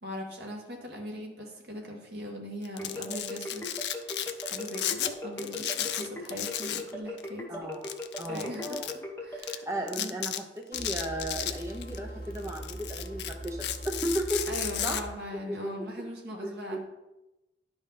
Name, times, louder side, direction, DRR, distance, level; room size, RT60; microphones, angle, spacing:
voice 1, 0.0-7.7 8.3-8.9 9.2-9.6 9.9-10.2 14.5-16.8, equal, 60° right, 0 dB, 1.8 m, -40 dB
Domestic sounds home sounds, 2.6-5.1 5.4-6.9 7.2-7.3 7.8-8.9 9.4-9.6 9.9-10.4 10.7-12.0 12.4-15.0, left 11 dB, 70° left, 0.5 m, -34 dB
sound 1, 2.8-9.5, left 1 dB, 10° left, 1.5 m, -38 dB
voice 2, 7.5-7.9 8.2-8.9 9.7-14.6 14.8-15.0 15.5-15.6 16.7-16.8, right 1 dB, 15° right, 1 dB, 0.6 m, -34 dB
sound 2, 10.7-15.1, right 1 dB, 50° left, 1.7 m, -41 dB
11.0 x 5.3 x 4.1 m, 0.98 s
head